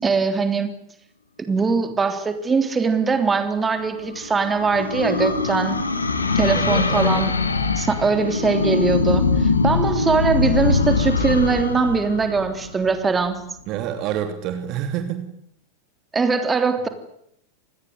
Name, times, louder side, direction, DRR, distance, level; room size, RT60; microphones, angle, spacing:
voice 1, 0.0-0.8 1.4-5.8 6.4-7.3 7.8-13.4 16.1-16.9, right 5 dB, 15° right, 9 dB, 3.5 m, -21 dB
sound 1, 3.6-13.2, left 4 dB, 75° left, 3.0 m, -22 dB
voice 2, 6.5-7.2 13.7-15.3, right 10 dB, 40° right, 8 dB, 2.8 m, -27 dB
27.0 x 20.0 x 9.6 m, 0.72 s
figure-of-eight pair, 90°, 0 cm